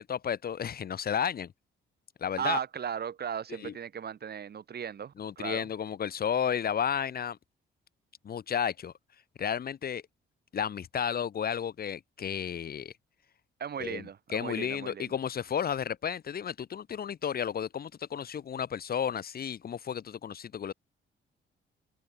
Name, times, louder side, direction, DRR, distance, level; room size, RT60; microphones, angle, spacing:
voice 1, 0.0-1.5 2.2-2.6 3.6-3.7 5.2-7.4 8.2-8.9 9.4-10.0 10.5-12.9 13.8-14.0 14.3-20.7, left 8 dB, 50° left, 1.4 m, -32 dB
voice 2, 2.4-5.7 13.6-15.1, right 8 dB, 55° right, 5.3 m, -36 dB
cardioid pair, 90°, 20 cm